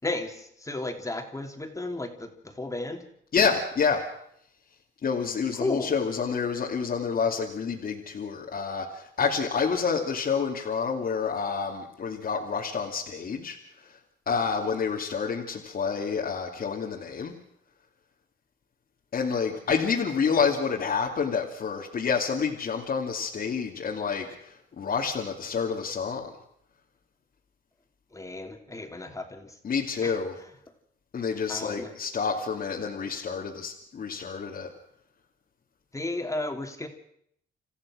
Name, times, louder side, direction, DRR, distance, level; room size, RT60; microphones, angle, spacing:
voice 1, 0.0-3.1 5.6-6.0 28.1-29.6 30.0-30.2 31.5-31.9 35.9-36.9, left 2 dB, 15° left, 4 dB, 3.1 m, -34 dB
voice 2, 3.3-4.0 5.0-14.0 14.3-17.3 19.1-26.3 29.6-30.3 31.1-34.7, left 5 dB, 50° left, -2 dB, 2.7 m, -28 dB
28.0 x 14.5 x 6.4 m, 0.71 s
cardioid pair, 90°, 20 cm